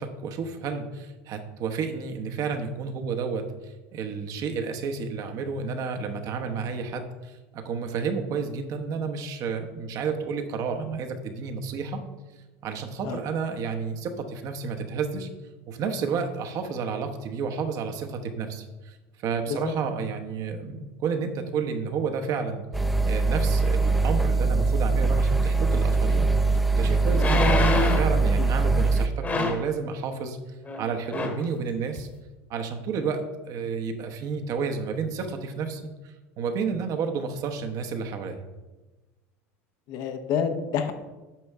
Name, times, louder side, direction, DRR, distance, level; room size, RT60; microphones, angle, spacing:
voice 1, 0.0-12.0 12.6-15.3 15.7-19.0 19.2-22.6 23.0-26.3 26.7-30.4 30.8-32.1 32.5-38.4, right 5 dB, 50° right, 6 dB, 0.9 m, -31 dB
sound 1, 22.7-29.1, right 3 dB, ahead, 0.5 m, -22 dB
sound 2, 26.1-26.2 27.1-28.2 29.2-29.7 30.7-30.8 31.1-31.4 32.0-32.1, left 2 dB, 20° left, 1.2 m, -25 dB
voice 2, 39.9-40.9, left 7 dB, 60° left, 7 dB, 0.8 m, -28 dB
8.8 x 5.4 x 3.5 m, 1.1 s
supercardioid pair, 100°, 7 cm